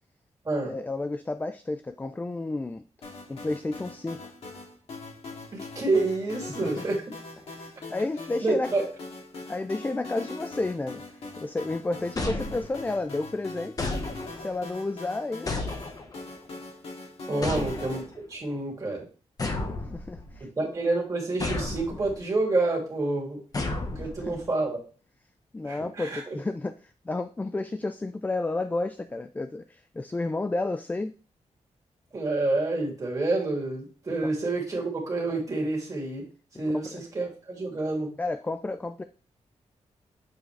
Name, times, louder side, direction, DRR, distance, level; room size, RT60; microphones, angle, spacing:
voice 1, 0.6-2.8 3.3-4.3 6.6-6.8 7.4-8.9 9.5-13.9 14.4-15.5 17.3-17.5 19.9-20.7 23.9-24.4 25.5-31.1 34.2-34.3 36.7-37.0 38.2-39.0, left 2 dB, 15° left, 10 dB, 0.3 m, -32 dB
sound 1, 3.0-18.0, left 3 dB, 60° left, 2.4 m, -42 dB
voice 2, 5.5-7.0 8.4-8.8 17.3-18.0 18.3-19.1 20.6-23.4 24.0-24.8 25.6-26.4 32.1-36.2 36.6-38.1, right 2 dB, 30° right, -2 dB, 2.6 m, -28 dB
sound 2, 12.2-13.0 13.8-14.6 15.5-16.3 17.4-18.2 19.4-20.4 21.4-22.2 23.5-24.5, left 2 dB, 30° left, 1.1 m, -32 dB
7.8 x 4.7 x 3.3 m, 0.36 s
wide cardioid pair, 160°, 12 cm